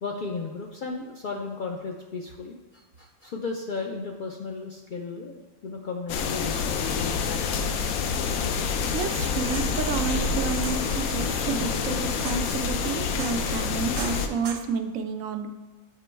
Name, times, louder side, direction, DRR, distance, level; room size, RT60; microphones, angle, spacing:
voice 1, 0.0-8.4, left 4 dB, 65° left, 0 dB, 0.5 m, -35 dB
sound 1, 6.1-14.3, left 5 dB, 85° left, 1.0 m, -27 dB
voice 2, 8.3-15.5, right 5 dB, 85° right, 7 dB, 1.0 m, -31 dB
sound 2, 9.4-14.6, right 5 dB, 60° right, 0.4 m, -39 dB
7.5 x 3.0 x 4.4 m, 1.3 s
omnidirectional pair, 1.4 m